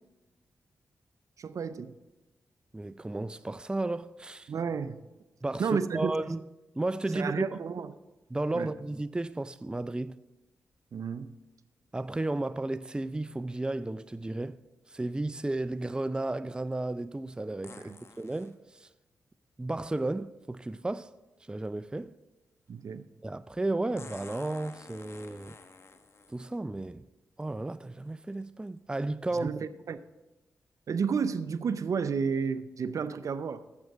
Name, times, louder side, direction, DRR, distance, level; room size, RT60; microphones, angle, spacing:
voice 1, 1.4-2.0 4.5-5.0 5.6-6.1 7.1-7.9 8.5-8.7 10.9-11.3 17.9-18.0 22.7-23.0 29.3-30.0 30.9-33.6, right 6 dB, 65° right, 0.6 m, -31 dB
voice 2, 2.7-4.5 5.4-6.4 6.8-7.5 8.3-10.2 11.9-14.6 14.9-18.9 19.6-21.1 21.5-22.2 23.2-25.6 26.3-27.0 27.4-29.6, right 2 dB, 15° right, 0.4 m, -33 dB
sound 1, 17.6-18.5 20.5-20.6 24.0-26.4 27.4-27.5 28.1-28.4 29.4-29.5, left 4 dB, 45° left, 1.1 m, -50 dB
10.5 x 7.7 x 6.1 m
supercardioid pair, 45°, 6 cm